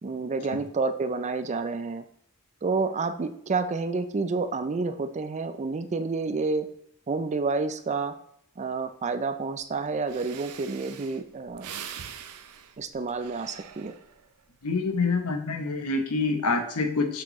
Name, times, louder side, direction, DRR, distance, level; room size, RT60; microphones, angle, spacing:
voice 1, 0.0-2.0 2.6-6.7 7.1-8.1 8.6-11.7 12.8-13.9, right 4 dB, 30° right, 10 dB, 0.4 m, -29 dB
Breathing, 9.8-9.9 10.1-14.3 14.8-15.2, right 8 dB, 80° right, 0.6 m, -43 dB
voice 2, 14.6-17.2, left 3 dB, 90° left, 6 dB, 0.9 m, -26 dB
6.5 x 6.0 x 3.1 m, 0.69 s
head